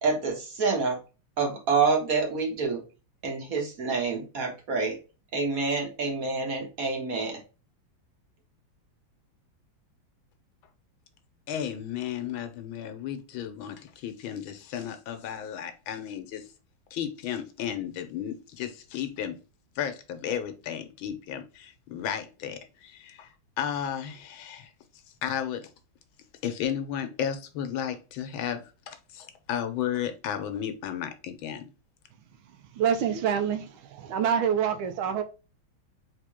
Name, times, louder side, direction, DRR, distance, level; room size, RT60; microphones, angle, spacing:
voice 1, 0.0-1.0 1.4-2.8 3.2-5.0 5.3-7.4, right 4 dB, 50° right, 1.4 m, -27 dB
voice 2, 11.5-16.4 16.9-19.4 19.8-24.7 25.2-25.7 26.4-31.6, left 9 dB, 85° left, 1.5 m, -34 dB
voice 3, 32.7-35.2, right 8 dB, 85° right, 1.5 m, -26 dB
3.7 x 3.6 x 3.5 m
omnidirectional pair, 2.2 m